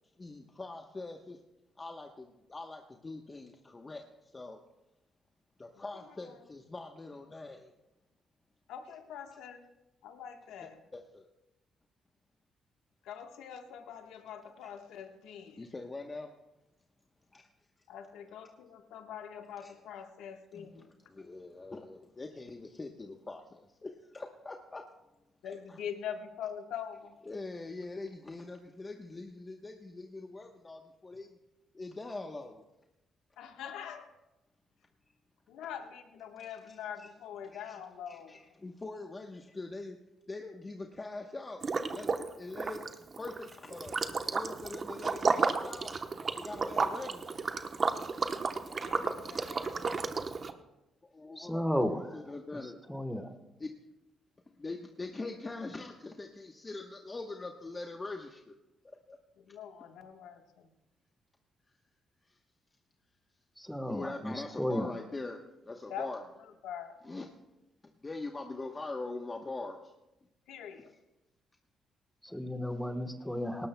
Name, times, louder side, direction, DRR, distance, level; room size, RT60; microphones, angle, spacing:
voice 1, 0.2-1.4 1.8-4.1 4.3-4.6 5.6-7.7 10.6-11.3 15.6-16.3 17.3-17.4 19.6-19.7 20.5-20.7 21.1-24.8 25.4-25.8 27.2-31.4 31.7-32.6 36.7-37.1 37.5-37.8 38.1-40.0 40.3-41.6 41.9-42.1 42.4-42.9 43.2-45.9 46.3-47.3 51.1-52.8 53.6-53.7 54.5-58.5 59.1-59.2 63.9-66.2 67.0-67.3 68.0-69.8, left 3 dB, 25° left, 3 dB, 1.0 m, -43 dB
voice 2, 5.7-6.4 8.7-9.7 10.0-10.8 13.0-15.7 17.9-20.9 21.3-21.4 25.4-27.2 33.4-34.1 35.5-38.4 48.7-49.9 59.5-60.7 65.9-66.1 66.6-67.0 70.5-70.9, left 8 dB, 90° left, 5 dB, 1.3 m, -44 dB
Liquid, 41.6-42.3 42.5-50.5, right 4 dB, 40° right, 0.9 m, -32 dB
voice 3, 51.4-53.3 63.6-64.9 72.2-73.7, equal, 5° left, 6 dB, 1.2 m, -34 dB
18.5 x 18.0 x 2.2 m, 0.96 s
cardioid pair, 90°, 0 cm